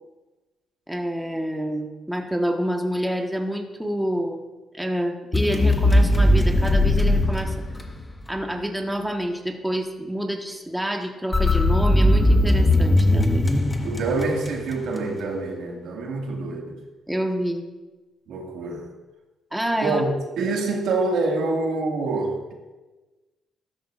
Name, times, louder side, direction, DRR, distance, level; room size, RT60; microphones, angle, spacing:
voice 1, 0.9-4.4 4.8-7.7 8.3-13.4 17.1-17.6 19.5-20.0, equal, 5° right, 2 dB, 1.3 m, -27 dB
sound 1, 5.3-8.3 11.3-14.8, left 1 dB, 20° left, 1.4 m, -19 dB
voice 2, 13.8-16.8 18.3-18.9 19.8-20.1 20.4-22.4, right 3 dB, 80° right, 0 dB, 2.0 m, -26 dB
14.0 x 12.5 x 2.5 m, 1.2 s
cardioid pair, 90°, 0 cm